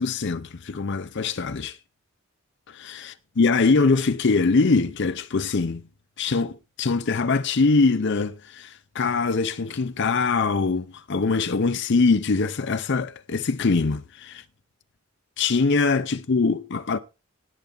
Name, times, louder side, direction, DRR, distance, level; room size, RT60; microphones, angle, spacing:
voice 1, 0.0-1.8 2.7-5.9 6.2-14.4 15.4-17.0, left 4 dB, 55° left, 0.6 m, -23 dB
17.5 x 7.0 x 3.9 m
head